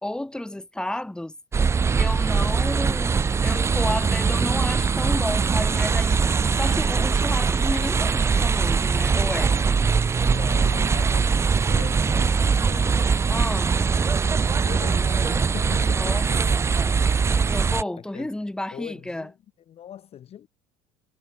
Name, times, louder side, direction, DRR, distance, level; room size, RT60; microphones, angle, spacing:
voice 1, 0.0-1.3 2.0-9.6 13.3-13.8 16.0-16.3 16.8-16.9 17.4-19.3, left 1 dB, 5° left, 1.7 m, -31 dB
sound 1, 1.5-17.8, right 5 dB, 15° right, 0.4 m, -22 dB
voice 2, 2.4-2.7 10.2-13.1 14.5-16.8 17.9-18.3 18.7-19.3 19.7-20.5, left 10 dB, 40° left, 0.8 m, -41 dB
supercardioid pair, 110°, 16 cm